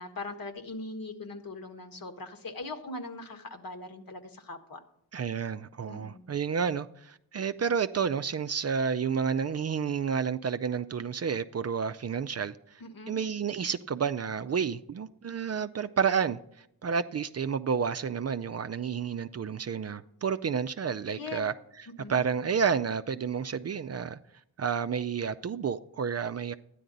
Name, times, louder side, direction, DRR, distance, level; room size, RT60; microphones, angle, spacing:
voice 1, 0.0-4.8 5.9-6.3 12.8-13.2 21.1-21.4 22.0-22.2, left 2 dB, 55° left, 1.5 m, -40 dB
voice 2, 5.1-12.8 13.1-21.5 22.1-24.2 24.6-26.5, right 6 dB, 40° right, 0.5 m, -30 dB
12.5 x 10.0 x 4.0 m
cardioid pair, 55°, 40 cm